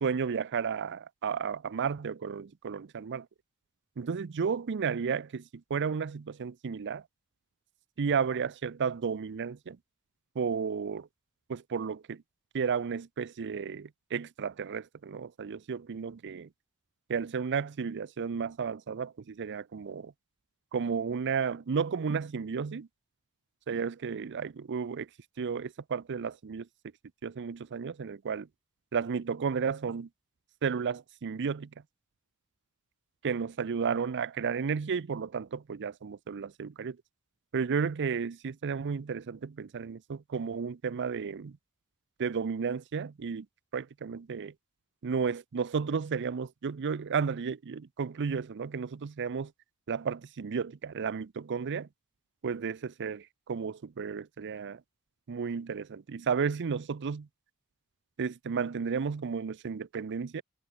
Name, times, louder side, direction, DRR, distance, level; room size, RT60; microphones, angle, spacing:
voice 1, 0.0-3.3 4.0-5.4 5.7-7.0 8.0-9.8 10.4-11.1 11.5-12.2 12.5-16.5 17.1-20.1 20.7-22.9 23.7-25.1 25.4-26.7 27.2-28.5 28.9-30.1 30.6-31.7 33.2-37.0 37.5-41.6 42.2-43.5 43.7-44.5 45.0-49.5 49.9-51.9 52.4-54.8 55.3-57.3 58.2-60.4, right 6 dB, 50° right, 0.5 m, -33 dB
head